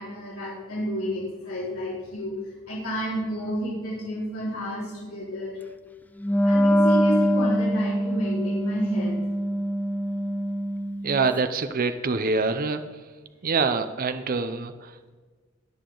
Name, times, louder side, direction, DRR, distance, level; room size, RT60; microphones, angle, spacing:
voice 1, 0.0-5.6 6.4-9.2, equal, 90° left, -6 dB, 4.3 m, -31 dB
Wind instrument woodwind instrument, 6.2-11.3, equal, 10° left, 0.4 m, -23 dB
voice 2, 11.0-12.8 13.4-15.1, right 4 dB, 45° right, 9 dB, 0.6 m, -25 dB
20.5 x 6.8 x 3.9 m, 1.4 s
head